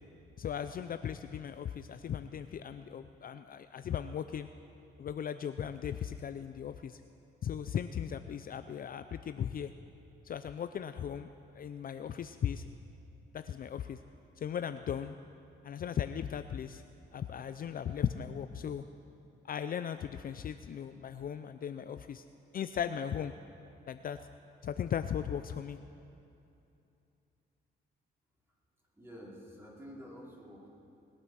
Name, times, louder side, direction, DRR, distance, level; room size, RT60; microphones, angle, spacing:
voice 1, 0.4-4.5 5.0-7.0 7.4-9.7 10.2-11.3 11.5-12.6 13.3-14.0 14.4-15.1 15.6-16.8 17.1-18.8 19.4-22.2 22.5-23.3 23.9-24.2 24.6-25.8, left 8 dB, 45° left, 10 dB, 0.5 m, -37 dB
voice 2, 29.0-30.7, equal, 10° right, -4 dB, 3.9 m, -49 dB
20.5 x 8.8 x 6.2 m, 2.7 s
cardioid pair, 90°, 20 cm